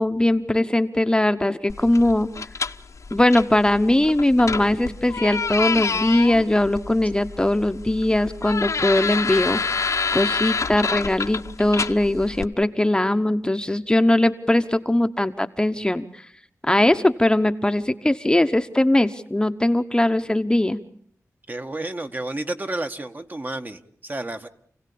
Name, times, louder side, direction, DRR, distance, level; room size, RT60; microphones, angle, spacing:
voice 1, 0.0-2.3 3.1-9.6 10.1-16.2 16.7-20.8, left 1 dB, 15° left, 9 dB, 1.1 m, -20 dB
sound 1, 1.7-12.4, left 4 dB, 65° left, 1.0 m, -28 dB
voice 2, 21.5-24.5, right 2 dB, 30° right, 7 dB, 1.6 m, -31 dB
29.0 x 17.0 x 8.6 m, 0.64 s
wide cardioid pair, 100°, 6 cm